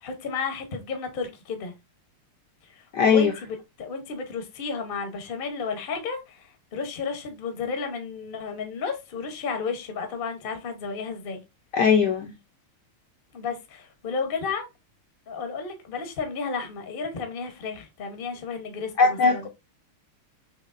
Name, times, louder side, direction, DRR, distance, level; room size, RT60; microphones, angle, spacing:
voice 1, 0.0-1.7 2.7-11.4 13.3-14.7 15.3-19.5, left 5 dB, 45° left, 0.7 m, -32 dB
voice 2, 2.9-3.3 11.7-12.3 19.0-19.5, left 5 dB, 70° left, 1.0 m, -19 dB
6.2 x 3.1 x 2.5 m
omnidirectional pair, 2.4 m